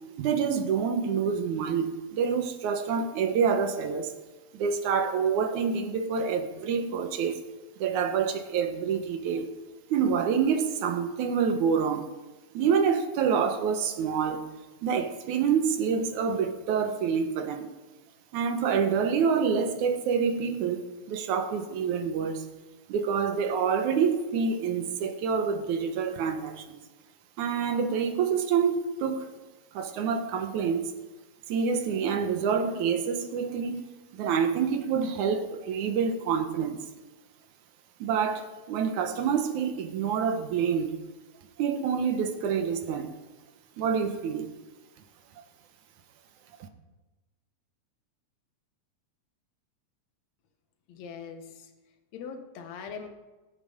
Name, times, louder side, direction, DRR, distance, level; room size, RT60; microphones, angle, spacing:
voice 1, 0.2-4.1 4.5-7.4 7.8-9.5 9.9-12.1 12.5-14.5 14.8-17.7 18.3-22.4 22.9-26.8 27.4-29.3 29.7-30.8 31.5-33.8 34.1-36.8 38.0-40.9 41.6-43.1 43.8-44.5, right 6 dB, 75° right, 2.4 m, -27 dB
voice 2, 50.9-51.4 52.1-53.1, left 6 dB, 65° left, 2.4 m, -40 dB
20.5 x 8.4 x 5.0 m
omnidirectional pair, 3.5 m